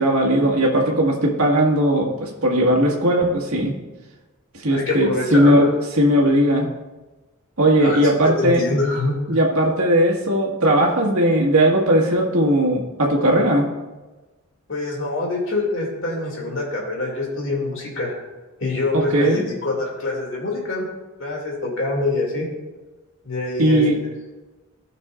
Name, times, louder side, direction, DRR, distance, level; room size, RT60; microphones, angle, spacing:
voice 1, 0.0-3.7 4.6-5.6 6.0-6.7 7.6-8.6 9.3-13.7 18.9-19.4 23.6-23.9, right 1 dB, 80° right, -2 dB, 1.8 m, -18 dB
voice 2, 4.7-5.7 7.8-9.2 14.7-18.1 18.6-20.8 21.2-22.5 23.2-23.8, left 2 dB, 60° left, -2 dB, 2.4 m, -25 dB
17.0 x 6.0 x 2.5 m, 1.2 s
head